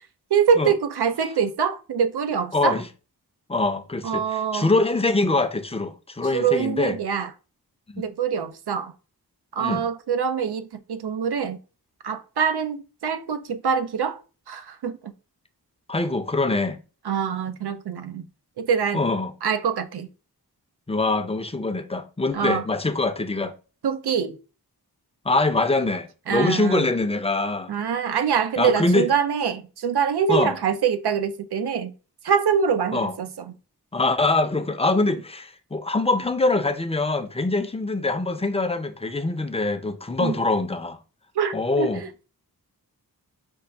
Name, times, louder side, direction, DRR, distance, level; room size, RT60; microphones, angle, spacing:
voice 1, 0.3-2.8 4.0-4.7 6.2-7.3 8.0-8.9 9.5-11.6 12.0-14.2 14.5-15.1 17.0-18.3 18.6-19.0 19.4-20.1 22.3-22.6 23.8-24.4 26.3-26.9 27.7-31.9 32.2-33.5 40.2-40.3 41.4-42.3, right 7 dB, 90° right, 0.5 m, -24 dB
voice 2, 2.5-2.9 3.5-7.0 7.9-8.1 9.6-9.8 15.9-16.8 18.9-19.3 20.9-23.5 25.3-27.7 28.6-29.1 30.3-30.6 32.9-33.1 33.9-41.0 41.5-42.1, left 2 dB, 15° left, 0.5 m, -24 dB
5.3 x 2.3 x 3.3 m
wide cardioid pair, 45°, 38 cm